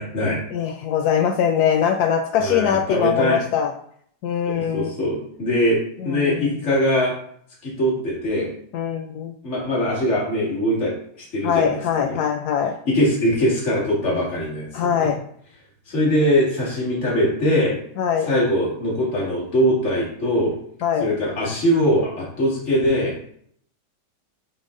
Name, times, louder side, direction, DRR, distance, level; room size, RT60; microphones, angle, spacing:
voice 1, 0.0-0.4 2.4-3.4 4.5-7.1 7.6-8.5 9.4-12.2 12.9-15.1 15.9-17.8 18.3-20.5 21.0-23.1, equal, 40° left, -5 dB, 2.4 m, -22 dB
voice 2, 0.5-3.7 4.2-4.9 6.0-6.4 8.7-9.3 11.4-12.7 14.7-15.2 18.0-18.3 20.8-21.1, left 8 dB, 75° left, 4 dB, 0.9 m, -22 dB
11.5 x 3.9 x 2.5 m, 0.64 s
omnidirectional pair, 2.1 m